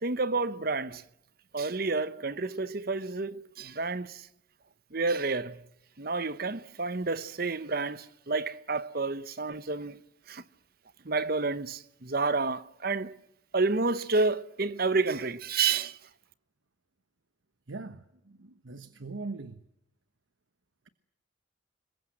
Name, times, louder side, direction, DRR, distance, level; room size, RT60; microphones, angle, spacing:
voice 1, 0.0-1.0 1.5-4.2 4.9-5.6 6.0-10.0 10.3-10.4 11.0-13.1 13.5-16.0, right 3 dB, 45° right, 0.9 m, -30 dB
voice 2, 17.7-19.6, right 3 dB, 70° right, 1.1 m, -41 dB
27.0 x 22.0 x 7.8 m
head